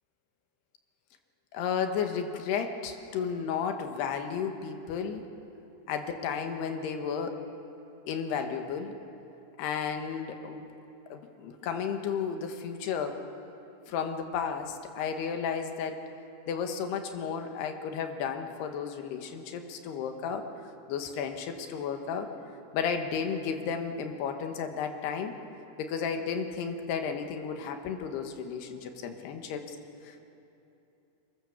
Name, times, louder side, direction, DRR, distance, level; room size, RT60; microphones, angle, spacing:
voice 1, 1.5-5.3 5.9-7.4 8.1-8.9 9.6-10.7 11.1-13.2 13.9-16.1 16.5-20.5 20.9-22.3 22.7-25.4 25.8-29.8 30.0-30.2, left 6 dB, 70° left, 6 dB, 3.2 m, -33 dB
23.0 x 20.5 x 7.2 m, 2.9 s
omnidirectional pair, 5.3 m